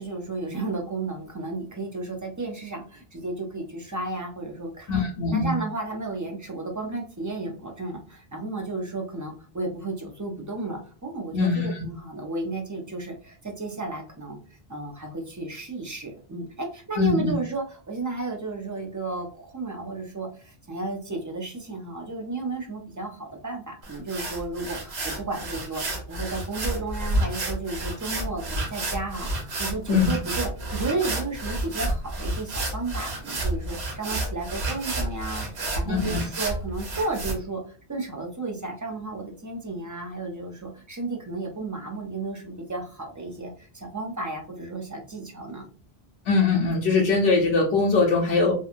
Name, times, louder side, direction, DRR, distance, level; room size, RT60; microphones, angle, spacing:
voice 1, 0.0-5.0 5.3-14.4 14.7-45.7, right 3 dB, 30° right, 2 dB, 0.4 m, -33 dB
voice 2, 4.9-5.6 11.3-11.8 17.0-17.3 29.9-30.1 35.9-36.2 46.3-48.5, left 4 dB, 85° left, 0 dB, 0.9 m, -22 dB
sound 1, 23.8-37.3, right 1 dB, 85° right, 1.1 m, -30 dB
2.8 x 2.3 x 2.4 m, 0.38 s
omnidirectional pair, 1.0 m